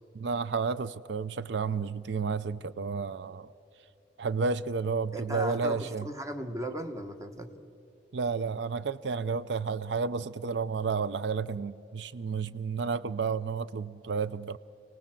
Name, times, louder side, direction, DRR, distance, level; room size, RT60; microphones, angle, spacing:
voice 1, 0.1-3.5 4.2-6.1 8.1-14.6, right 5 dB, 80° right, 15 dB, 0.5 m, -31 dB
voice 2, 5.1-7.6, equal, 20° right, 7 dB, 1.2 m, -37 dB
29.0 x 19.0 x 7.6 m, 2.9 s
head